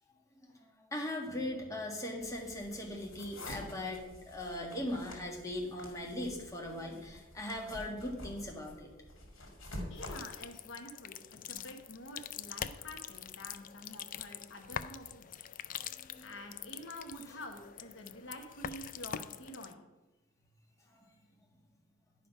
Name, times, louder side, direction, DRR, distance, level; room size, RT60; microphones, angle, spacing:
voice 1, 0.4-8.9 15.8-16.3 20.9-21.0, left 1 dB, 15° left, 0 dB, 1.7 m, -39 dB
sound 1, 2.2-10.2, left 1 dB, 85° left, 2.3 m, -48 dB
voice 2, 9.9-15.4 16.2-19.8, left 1 dB, 70° left, 4 dB, 1.1 m, -48 dB
sound 2, 10.0-19.7, left 9 dB, 45° left, 0.4 m, -44 dB
10.5 x 5.2 x 5.3 m, 1.1 s
head